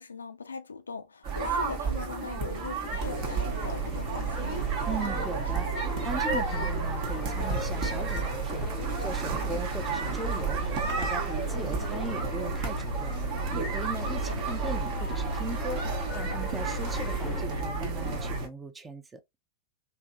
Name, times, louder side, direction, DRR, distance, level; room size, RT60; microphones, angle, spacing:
voice 1, 0.0-4.7 14.0-14.4, left 5 dB, 75° left, 0.4 m, -40 dB
sound 1, 1.2-18.5, right 5 dB, 45° right, 1.0 m, -32 dB
sound 2, 2.8-17.4, left 7 dB, 30° left, 0.6 m, -45 dB
sound 3, 2.9-18.5, right 2 dB, 75° right, 0.6 m, -35 dB
voice 2, 4.9-13.2 13.5-15.8 16.1-19.2, right 3 dB, 15° right, 0.6 m, -39 dB
3.3 x 2.9 x 2.5 m
figure-of-eight pair, 90°, 0 cm